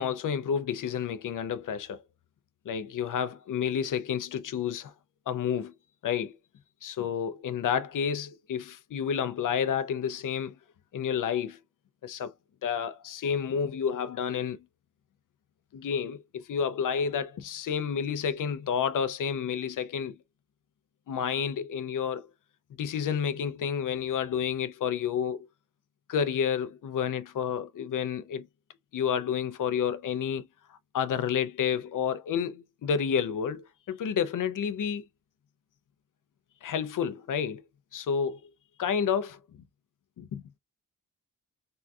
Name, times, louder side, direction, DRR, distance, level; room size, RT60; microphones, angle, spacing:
voice 1, 0.0-2.0 2.7-4.9 5.3-5.7 6.0-6.3 6.8-10.5 10.9-11.6 12.0-12.3 12.6-14.6 15.7-20.2 21.1-22.3 22.8-25.5 26.1-28.5 28.9-30.5 30.9-35.0 36.6-37.6 37.9-38.5 38.8-39.4 40.2-40.4, left 7 dB, 65° left, 0.5 m, -30 dB
3.6 x 2.3 x 2.6 m
wide cardioid pair, 95°, 34 cm